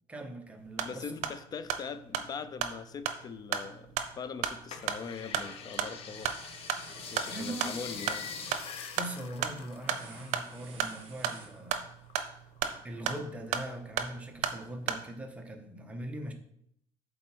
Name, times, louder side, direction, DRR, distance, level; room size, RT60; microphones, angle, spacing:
voice 1, 0.1-1.2 7.3-7.7 9.0-11.8 12.8-16.3, right 1 dB, 10° right, 4 dB, 0.8 m, -41 dB
sound 1, 0.6-15.1, right 8 dB, 75° right, 0.7 m, -36 dB
voice 2, 0.8-6.3 7.1-8.3, left 5 dB, 35° left, 12 dB, 0.4 m, -41 dB
sound 2, 4.7-10.5 10.8-12.1 12.6-13.4 13.9-14.0, left 6 dB, 55° left, 0.9 m, -44 dB
Sliding Table, 5.1-5.2 5.5-12.0, right 4 dB, 50° right, 1.6 m, -53 dB
7.6 x 4.2 x 4.4 m, 0.71 s
cardioid pair, 150°, 12 cm